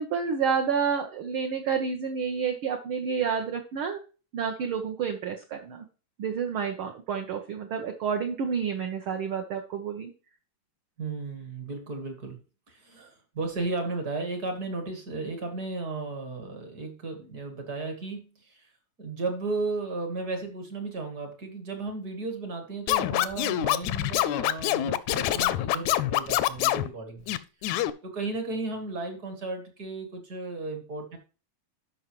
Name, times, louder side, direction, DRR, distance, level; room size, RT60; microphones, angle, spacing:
voice 1, 0.0-4.0 4.3-5.8 6.2-10.1 13.0-13.1, right 6 dB, 70° right, 3 dB, 1.3 m, -29 dB
voice 2, 11.0-12.4 12.7-18.7 19.0-27.3 28.0-31.2, right 3 dB, 40° right, 4 dB, 1.5 m, -34 dB
Scratching (performance technique), 22.9-26.9 27.3-27.9, left 14 dB, 80° left, 1.8 m, -25 dB
12.5 x 5.4 x 3.0 m, 0.35 s
omnidirectional pair, 3.3 m